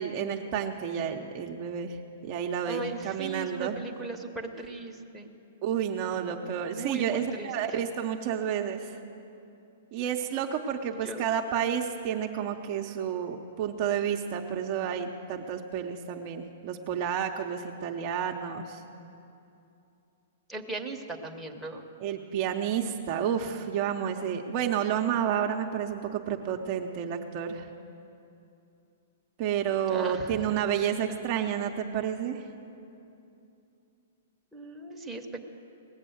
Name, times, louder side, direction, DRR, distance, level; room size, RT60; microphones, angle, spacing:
voice 1, 0.0-2.0 2.2-3.8 5.6-9.0 9.9-18.8 22.0-27.7 29.4-32.4, right 8 dB, 35° right, 3 dB, 0.7 m, -30 dB
voice 2, 2.6-5.3 6.7-7.5 11.0-11.2 20.5-21.8 29.9-31.2 34.5-35.5, right 3 dB, 5° right, -1 dB, 0.9 m, -38 dB
18.5 x 7.2 x 7.9 m, 2.7 s
hypercardioid pair, 155°, 0 cm